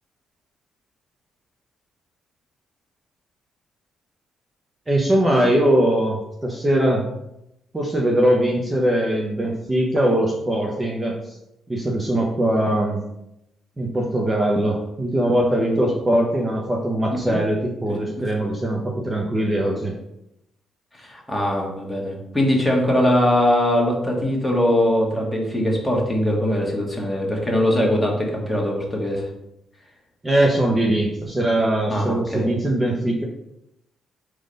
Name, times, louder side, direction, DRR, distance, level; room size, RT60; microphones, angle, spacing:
voice 1, 4.9-7.1 7.7-11.4 11.7-13.0 13.8-19.9 30.2-33.2, right 1 dB, 20° right, -1 dB, 0.9 m, -21 dB
voice 2, 21.0-29.3 31.9-32.4, left 1 dB, 10° left, -2 dB, 1.8 m, -21 dB
4.9 x 4.0 x 5.2 m, 0.84 s
cardioid pair, 90°, 0 cm